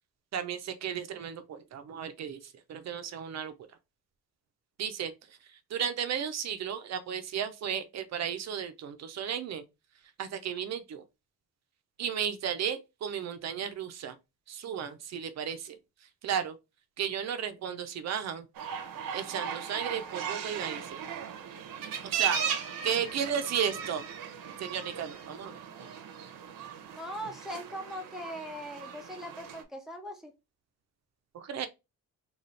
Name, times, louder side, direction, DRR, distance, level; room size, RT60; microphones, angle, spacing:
voice 1, 0.3-3.5 4.8-9.6 10.2-11.0 12.0-14.2 14.5-15.8 16.2-16.6 17.0-18.5 19.1-21.0 22.0-22.4 22.8-24.0 24.6-25.6 31.3-31.7, right 8 dB, 50° right, 0.5 m, -34 dB
sound 1, 18.6-29.6, right 7 dB, 80° right, 0.8 m, -37 dB
voice 2, 27.0-30.3, equal, ahead, 0.4 m, -40 dB
4.1 x 2.3 x 3.1 m
wide cardioid pair, 175°, 34 cm